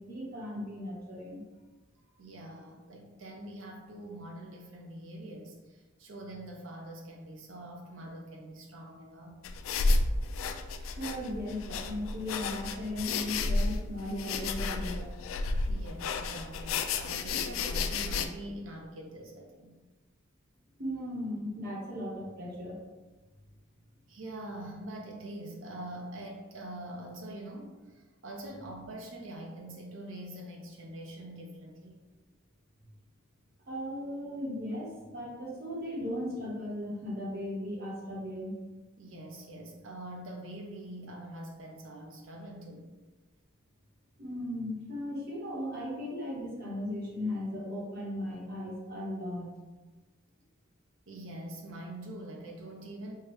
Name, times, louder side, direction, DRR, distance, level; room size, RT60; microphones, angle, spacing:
voice 1, 0.0-1.4 10.8-15.1 20.8-22.8 33.7-38.5 44.2-49.5, left 1 dB, 50° right, -4 dB, 1.1 m, -37 dB
voice 2, 2.2-9.4 15.6-19.8 24.1-32.0 39.0-42.9 51.1-53.1, right 1 dB, 70° right, 1 dB, 0.7 m, -44 dB
sound 1, 9.4-18.3, left 3 dB, 75° left, 0.3 m, -32 dB
4.6 x 2.3 x 3.1 m, 1.2 s
head